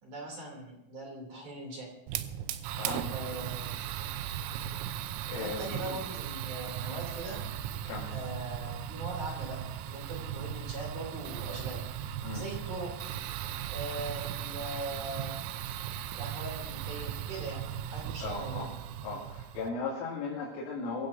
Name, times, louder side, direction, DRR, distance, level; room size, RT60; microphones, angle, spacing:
voice 1, 0.0-1.9 3.1-3.7 5.3-7.4 8.1-11.8 12.3-12.9 13.7-15.4 16.1-18.7, right 2 dB, 40° right, -1 dB, 3.9 m, -40 dB
Fire, 2.1-19.7, right 10 dB, 80° right, 3.4 m, -37 dB
voice 2, 2.7-3.1 5.1-6.0 7.8-8.1 12.2-12.4 18.2-18.7 19.0-21.1, left 4 dB, 70° left, -7 dB, 5.1 m, -37 dB
24.0 x 15.5 x 2.7 m, 0.91 s
omnidirectional pair, 6.0 m